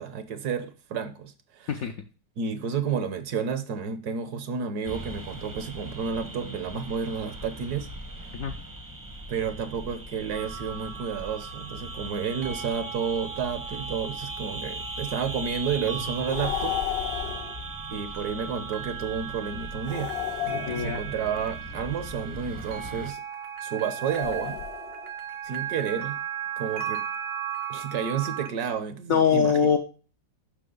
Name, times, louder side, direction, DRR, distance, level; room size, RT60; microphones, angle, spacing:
voice 1, 0.0-1.9 2.4-7.9 8.2-8.3 9.3-16.8 17.9-20.1 20.4-23.2 23.6-24.6 25.4-26.2 26.6-27.0 27.7-29.6, right 6 dB, 70° right, 11 dB, 1.3 m, -31 dB
sound 1, 4.8-23.1, right 1 dB, 20° right, 0.6 m, -39 dB
sound 2, 10.3-28.5, right 9 dB, 85° right, 1.6 m, -37 dB
sound 3, 16.2-17.6 19.8-21.3 24.0-25.1, left 12 dB, 85° left, 1.2 m, -33 dB
voice 2, 20.7-21.0 29.1-29.8, left 6 dB, 60° left, 3 dB, 1.0 m, -22 dB
6.8 x 5.8 x 3.7 m, 0.35 s
omnidirectional pair, 1.9 m